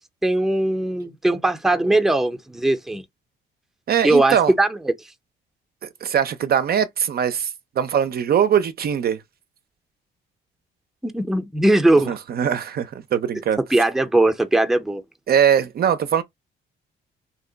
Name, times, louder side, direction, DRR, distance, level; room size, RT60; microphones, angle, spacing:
voice 1, 0.2-3.0 4.0-4.9 11.0-12.2 13.7-15.0, right 2 dB, ahead, 0.5 m, -19 dB
voice 2, 3.9-4.5 5.8-9.2 12.1-13.6 15.3-16.2, right 8 dB, 50° right, 0.5 m, -21 dB
2.8 x 2.1 x 3.8 m
cardioid pair, 90°, 20 cm